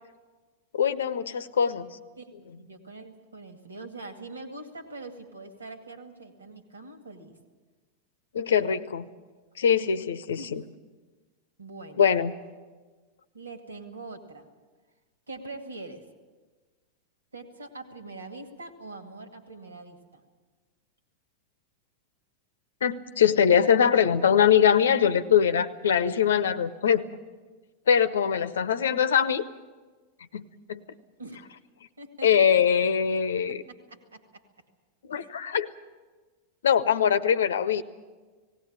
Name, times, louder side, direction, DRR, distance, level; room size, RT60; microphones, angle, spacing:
voice 1, 0.7-2.0 8.3-9.1 9.6-10.6 12.0-12.3 22.8-27.0 27.9-29.4 30.3-30.8 32.2-33.6 35.1-35.7 36.6-37.8, left 8 dB, 65° left, 14 dB, 0.8 m, -22 dB
voice 2, 2.2-7.3 10.4-10.5 11.6-12.0 13.3-14.5 15.3-16.0 17.3-20.2 31.2-31.4 32.0-32.7 33.5-34.4 35.1-35.3, right 2 dB, 75° right, 7 dB, 2.1 m, -43 dB
18.5 x 17.5 x 8.8 m, 1.3 s
figure-of-eight pair, 90°, 0 cm